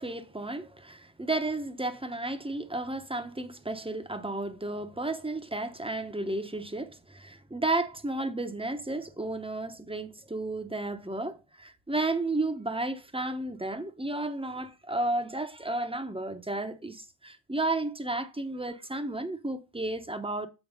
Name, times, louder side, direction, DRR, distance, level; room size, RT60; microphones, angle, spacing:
voice 1, 0.0-20.5, right 2 dB, 10° right, 0.9 m, -33 dB
7.2 x 4.6 x 6.4 m
wide cardioid pair, 115°, 45 cm